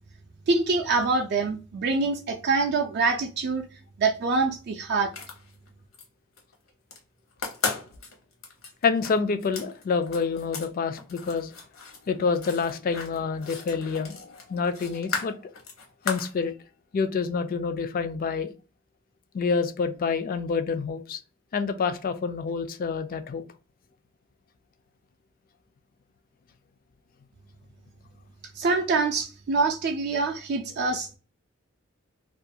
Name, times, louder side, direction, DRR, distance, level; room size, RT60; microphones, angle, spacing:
voice 1, 0.5-3.6 4.0-5.1 28.6-31.2, right 3 dB, 55° right, 0.4 m, -25 dB
sound 1, 5.0-6.0 6.4-7.0 7.3-10.7 11.0-16.3, left 5 dB, 75° left, 0.8 m, -36 dB
voice 2, 8.8-11.5 12.1-15.4 16.0-16.5 16.9-18.5 19.3-21.2 21.5-23.4, left 5 dB, 45° left, 0.3 m, -27 dB
2.4 x 2.2 x 2.6 m
head